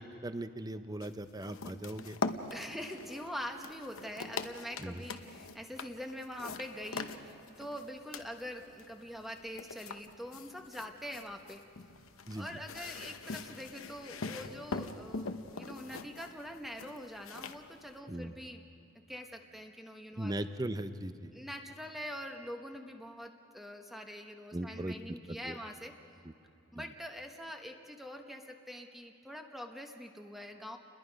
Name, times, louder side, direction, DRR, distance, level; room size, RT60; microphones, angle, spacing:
voice 1, 0.0-2.2 4.8-5.0 12.3-12.5 18.1-18.3 20.2-21.3 24.5-24.9 25.3-25.6 26.2-26.3 26.7-26.8, right 1 dB, 15° right, 11 dB, 0.6 m, -39 dB
sound 1, 1.0-18.0, left 4 dB, 70° left, 0.9 m, -43 dB
voice 2, 2.5-11.6 12.3-18.6 19.1-20.3 21.3-25.9 26.7-30.8, equal, ahead, 3 dB, 0.9 m, -44 dB
29.5 x 21.0 x 5.2 m, 2.7 s
head